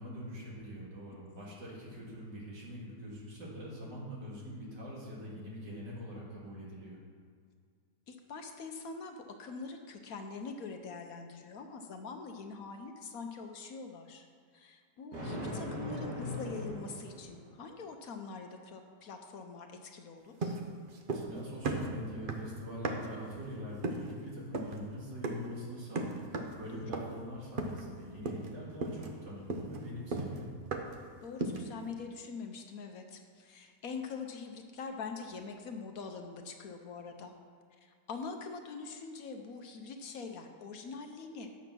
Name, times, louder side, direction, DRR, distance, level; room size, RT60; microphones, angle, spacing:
voice 1, 0.0-7.0 21.1-30.5, equal, 85° right, -5 dB, 2.9 m, -43 dB
voice 2, 8.1-14.3 14.5-20.6 26.4-26.9 31.2-37.3 37.8-41.5, left 4 dB, 60° left, 4 dB, 1.1 m, -44 dB
Thunder, 15.1-17.6, left 1 dB, 65° right, 2.1 m, -40 dB
sound 1, 20.4-21.4 21.6-23.2 23.8-24.1 24.5-24.8 25.2-25.5 26.0-26.6 26.9-27.2 27.6-28.0 28.3-28.5 28.8-31.1 31.4-31.8, right 3 dB, 50° right, 0.6 m, -36 dB
8.8 x 7.1 x 6.0 m, 2.1 s
omnidirectional pair, 1.8 m